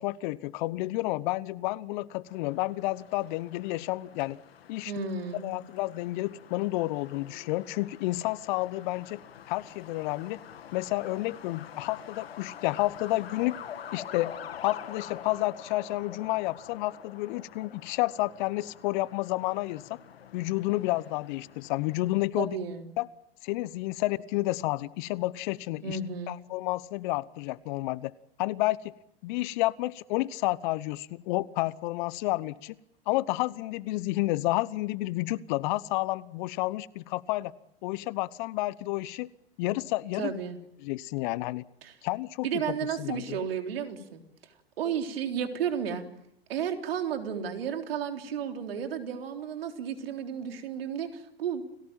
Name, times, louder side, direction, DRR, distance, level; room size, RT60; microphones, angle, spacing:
voice 1, 0.0-4.4 4.7-4.9 5.3-9.2 9.5-10.4 10.7-13.6 13.9-14.3 14.6-19.8 20.3-22.6 23.0-23.1 23.4-26.0 26.3-28.1 28.4-28.9 29.2-32.8 33.1-37.5 37.8-39.3 39.6-40.4 40.8-41.6 42.0-42.5 43.0-43.4, left 19 dB, 50° left, 20 dB, 1.0 m, -30 dB
Truck, 2.3-22.3, left 9 dB, 75° left, 1.9 m, -47 dB
voice 2, 4.9-5.5 22.4-22.9 25.8-26.4 40.2-40.6 41.8-41.9 42.4-44.2 44.8-46.0 46.5-51.6, right 7 dB, 70° right, 5 dB, 3.9 m, -33 dB
30.0 x 18.5 x 9.1 m, 0.79 s
hypercardioid pair, 100°, 31 cm